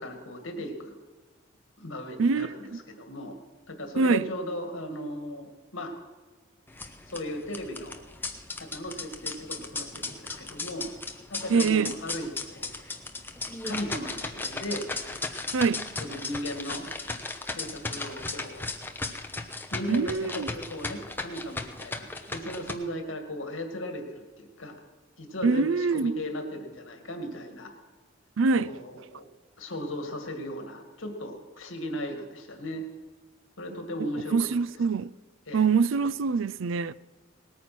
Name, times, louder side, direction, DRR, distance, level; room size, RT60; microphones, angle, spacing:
voice 1, 0.0-0.9 1.8-3.4 3.7-6.0 7.1-8.0 8.6-10.9 11.3-12.7 13.6-14.8 15.2-15.4 16.0-16.9 17.5-18.7 19.7-24.8 25.2-27.7 28.5-29.2 29.6-32.9 33.6-34.5 35.5-35.7, equal, 80° left, 2.1 m, -37 dB
sound 1, 6.7-22.7, left 3 dB, 10° left, 0.9 m, -36 dB
voice 2, 11.5-11.9 15.5-15.9 19.9-20.5 25.4-26.1 28.4-28.7 34.3-35.1 35.5-36.9, right 5 dB, 80° right, 0.4 m, -24 dB
19.0 x 9.4 x 6.1 m
head